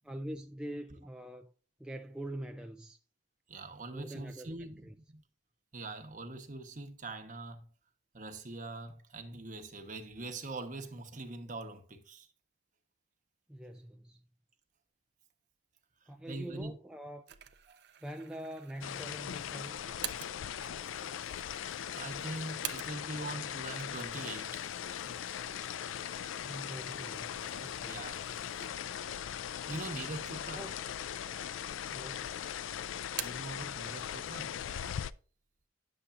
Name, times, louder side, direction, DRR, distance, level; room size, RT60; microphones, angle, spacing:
voice 1, 0.1-1.5 1.8-3.0 3.9-4.9 13.5-14.2 16.1-17.2 18.0-19.8 26.4-28.1 30.5-30.7 31.8-32.3, right 1 dB, 5° right, 0.3 m, -44 dB
voice 2, 3.5-5.2 5.7-7.6 8.1-12.3 16.3-16.8 17.7-17.8 21.9-24.6 25.1-25.2 27.8-28.2 29.7-30.7 33.2-34.6, right 2 dB, 40° right, 1.1 m, -43 dB
sound 1, 17.3-23.3 23.6-29.1 29.5-29.6 30.4-31.1 31.4-32.2 32.5-33.6, right 12 dB, 60° right, 0.5 m, -48 dB
sound 2, 18.8-35.1, left 9 dB, 90° left, 0.4 m, -39 dB
9.6 x 7.0 x 2.5 m
head